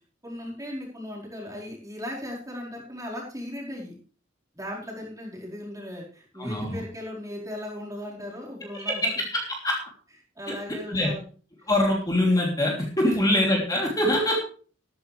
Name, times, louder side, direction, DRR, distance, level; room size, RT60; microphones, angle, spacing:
voice 1, 0.2-3.9 4.5-9.1 10.4-11.2 13.1-13.2 14.3-14.4, left 1 dB, 15° right, -4 dB, 4.7 m, -37 dB
voice 2, 6.4-6.8 8.7-9.8 10.5-10.6 10.9-11.1 11.7-14.4, left 1 dB, 20° left, -2 dB, 3.2 m, -24 dB
14.0 x 13.5 x 3.4 m, 0.40 s
head